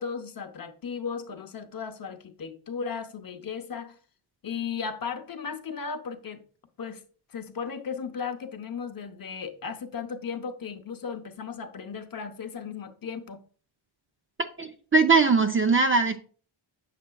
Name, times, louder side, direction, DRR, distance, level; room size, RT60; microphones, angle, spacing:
voice 1, 0.0-4.0 4.4-6.4 6.8-7.0 7.3-13.4, left 6 dB, 45° left, 0.8 m, -36 dB
voice 2, 14.6-16.2, right 4 dB, 25° right, 0.5 m, -21 dB
8.4 x 6.7 x 2.3 m
wide cardioid pair, 145°, 50 cm